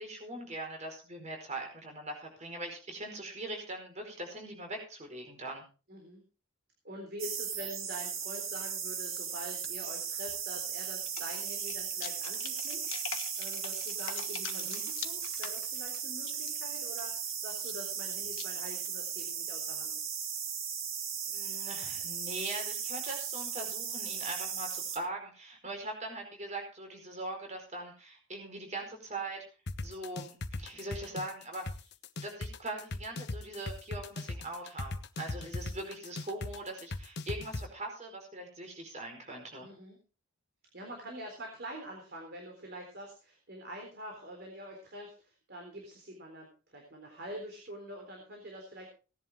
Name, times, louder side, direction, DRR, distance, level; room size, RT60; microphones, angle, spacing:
voice 1, 0.0-5.6 14.5-14.8 21.3-29.4 29.8-31.6 32.2-39.7, right 2 dB, 35° right, 3 dB, 4.7 m, -41 dB
voice 2, 5.9-6.2 6.8-19.9 35.6-35.9 39.6-40.0 40.7-48.9, right 1 dB, 50° right, 2 dB, 3.9 m, -46 dB
sound 1, 7.2-25.0, right 7 dB, 75° right, 2.4 m, -37 dB
sound 2, 9.1-9.7 10.3-19.2, left 9 dB, 70° left, 1.4 m, -44 dB
sound 3, 29.7-37.6, left 2 dB, 55° left, 1.1 m, -37 dB
18.0 x 11.0 x 3.7 m, 0.34 s
head